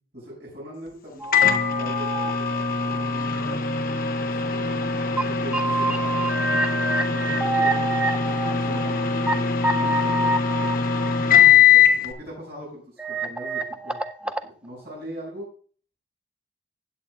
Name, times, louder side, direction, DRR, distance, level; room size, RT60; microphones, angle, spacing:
voice 1, 0.1-3.5 4.2-4.8 5.3-7.9 8.5-9.5 9.7-10.3 11.7-14.3 14.6-15.5, equal, 60° right, -5 dB, 6.1 m, -41 dB
sound 1, 1.2-2.3 2.9-3.0 4.8-4.9 5.2-5.3 5.5-9.3 9.6-11.5 13.0-14.5, right 1 dB, 5° right, 0.5 m, -27 dB
Microwave oven, 1.3-12.1, left 7 dB, 45° left, 1.0 m, -22 dB
16.0 x 8.9 x 2.4 m, 0.41 s
head